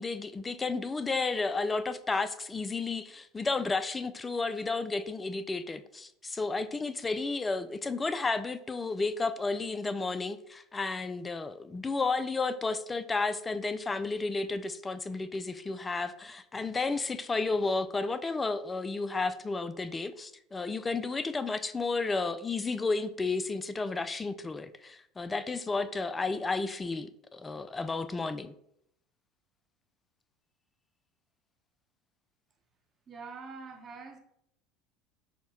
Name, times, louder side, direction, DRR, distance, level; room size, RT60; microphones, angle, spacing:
voice 1, 0.0-28.5, left 3 dB, 20° left, 0.3 m, -32 dB
voice 2, 33.1-34.2, right 4 dB, 35° right, 0.9 m, -44 dB
6.3 x 2.2 x 2.9 m
hypercardioid pair, 85°, 0 cm